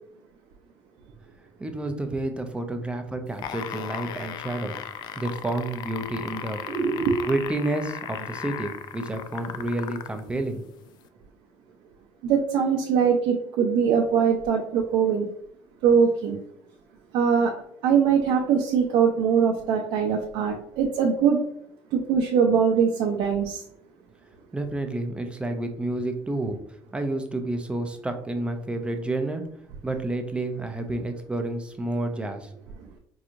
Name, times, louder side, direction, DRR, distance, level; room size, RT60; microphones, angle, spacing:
voice 1, 1.6-4.7 5.2-6.6 7.2-10.7 24.5-26.6 26.9-29.5 29.8-32.6, right 2 dB, 15° right, 6 dB, 0.5 m, -30 dB
sound 1, 3.3-10.2 11.0-11.1, left 10 dB, 60° left, 0.3 m, -36 dB
voice 2, 6.7-7.2 12.2-15.3 15.8-16.4 17.1-17.5 17.8-21.4 21.9-23.6, right 6 dB, 75° right, 0 dB, 0.6 m, -22 dB
4.7 x 2.9 x 2.5 m, 0.70 s
cardioid pair, 120°, 8 cm